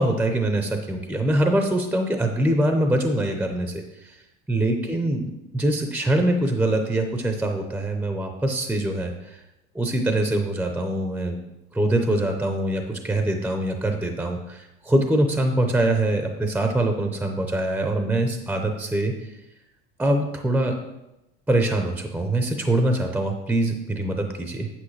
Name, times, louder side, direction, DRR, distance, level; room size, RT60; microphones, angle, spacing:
voice 1, 0.0-4.1 4.5-9.4 9.7-11.4 11.7-19.3 20.0-20.8 21.5-24.7, right 1 dB, 5° right, 4 dB, 0.6 m, -23 dB
8.8 x 7.7 x 3.2 m, 0.95 s
supercardioid pair, 130°, 30 cm